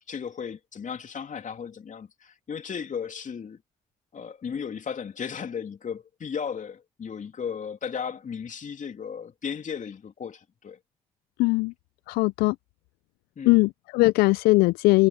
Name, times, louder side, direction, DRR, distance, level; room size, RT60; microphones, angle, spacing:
voice 1, 0.1-3.6 4.1-10.8 13.4-13.6, left 7 dB, 55° left, 2.8 m, -35 dB
voice 2, 11.4-11.7 12.1-12.6 13.5-15.1, left 23 dB, 80° left, 0.4 m, -20 dB
hypercardioid pair, 40°, 16 cm